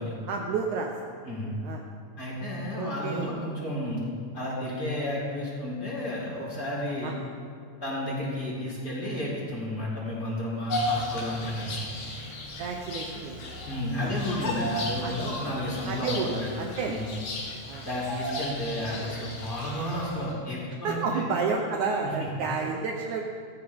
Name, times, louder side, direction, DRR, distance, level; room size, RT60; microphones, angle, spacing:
voice 1, 0.3-1.1 1.6-1.8 2.8-3.3 7.0-7.1 12.6-13.4 14.0-14.1 15.0-15.2 15.9-17.0 17.7-17.9 18.9-19.0 20.8-23.2, right 4 dB, 70° right, 1 dB, 2.0 m, -31 dB
voice 2, 2.2-4.0 4.3-7.1 7.8-11.8 13.7-16.5 16.9-17.1 17.8-21.2, left 1 dB, 25° left, -6 dB, 4.5 m, -32 dB
Bird vocalization bird call bird song, 10.7-20.3, left 1 dB, 85° left, 4.3 m, -35 dB
19.0 x 14.0 x 3.6 m, 2.3 s
omnidirectional pair, 4.1 m